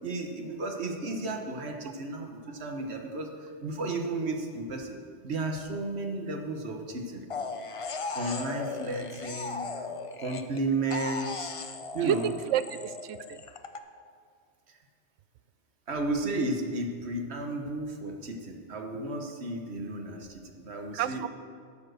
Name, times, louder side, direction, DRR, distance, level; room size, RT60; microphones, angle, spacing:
voice 1, 0.0-7.2 8.1-9.9 10.2-11.5 11.9-12.2 14.7-14.8 15.9-21.3, right 2 dB, 65° right, 3 dB, 1.4 m, -33 dB
sound 1, 7.3-10.6 10.9-13.8, left 4 dB, 40° left, 0.5 m, -37 dB
voice 2, 11.9-13.4 20.9-21.3, right 10 dB, 90° right, 14 dB, 0.9 m, -30 dB
12.0 x 7.3 x 6.4 m, 2.2 s
omnidirectional pair, 1.2 m